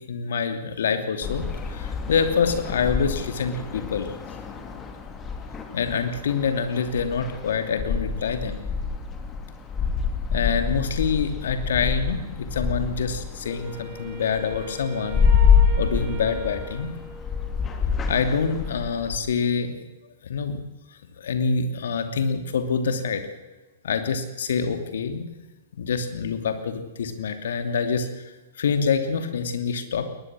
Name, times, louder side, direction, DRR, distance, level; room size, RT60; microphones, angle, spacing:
voice 1, 0.0-4.1 5.7-8.6 10.3-15.2 15.8-16.9 18.1-19.8 20.2-20.6 21.2-23.2 23.8-25.2 25.8-28.2 28.6-30.0, left 5 dB, 65° left, 8 dB, 2.8 m, -26 dB
sound 1, 1.2-19.2, left 6 dB, 20° left, 3.1 m, -27 dB
Wind instrument woodwind instrument, 13.4-17.8, right 5 dB, 45° right, 4.3 m, -40 dB
22.0 x 19.5 x 6.3 m, 1.1 s
hypercardioid pair, 115°, 0 cm